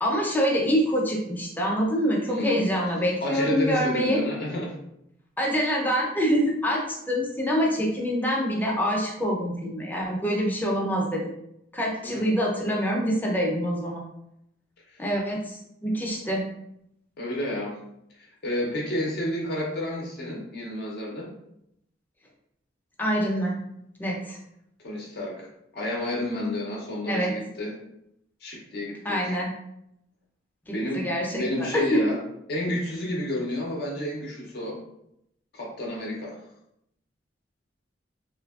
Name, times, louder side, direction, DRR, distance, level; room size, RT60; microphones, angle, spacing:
voice 1, 0.0-4.2 5.4-11.2 11.7-14.0 15.0-16.4 23.0-23.6 24.0-24.4 27.1-27.3 29.0-29.5 30.7-32.1, equal, 10° left, -2 dB, 0.5 m, -25 dB
voice 2, 2.3-2.7 3.2-4.8 12.0-12.3 14.9-15.0 17.2-17.8 18.2-21.3 24.8-25.5 25.7-27.7 28.4-29.3 30.7-32.2 32.5-34.8 35.5-36.4, left 1 dB, 60° left, -2 dB, 0.5 m, -30 dB
2.7 x 2.5 x 2.3 m, 0.78 s
head